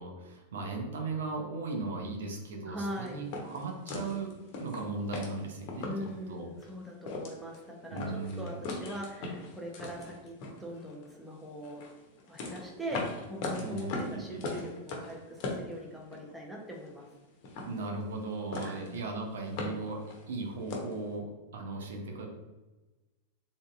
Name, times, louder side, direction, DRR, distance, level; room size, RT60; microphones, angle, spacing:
voice 1, 0.0-5.9 6.3-6.5 7.9-8.7 13.6-14.7 17.6-22.3, right 3 dB, 60° right, 1 dB, 0.7 m, -37 dB
voice 2, 2.7-3.2 5.8-11.8 12.3-13.0 13.3-17.1 18.6-18.9, equal, 5° right, -1 dB, 0.9 m, -41 dB
sound 1, 2.8-6.2 6.6-6.7 7.0-7.6 8.0-11.1 11.6-16.3 16.6-17.2 17.4-18.3 18.5-19.0 19.3-21.0, left 3 dB, 45° left, 0.9 m, -39 dB
3.8 x 3.6 x 2.5 m, 1.2 s
figure-of-eight pair, 90°, 0 cm